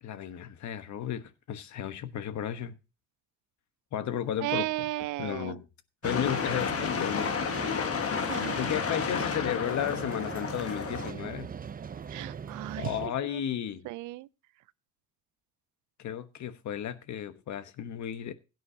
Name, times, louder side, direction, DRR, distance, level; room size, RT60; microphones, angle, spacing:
voice 1, 0.0-2.7 3.9-4.7 5.2-5.7 6.0-7.4 8.6-11.5 12.8-13.9 16.0-18.3, left 10 dB, 70° left, 1.2 m, -34 dB
voice 2, 4.4-5.6 8.3-8.6 12.1-13.4 13.8-14.3, right 18 dB, 85° right, 0.5 m, -35 dB
sound 1, 6.0-11.1, left 6 dB, 50° left, 1.5 m, -31 dB
sound 2, 6.0-13.1, right 7 dB, 30° right, 0.6 m, -40 dB
16.0 x 9.4 x 2.8 m
cardioid pair, 90°, 30 cm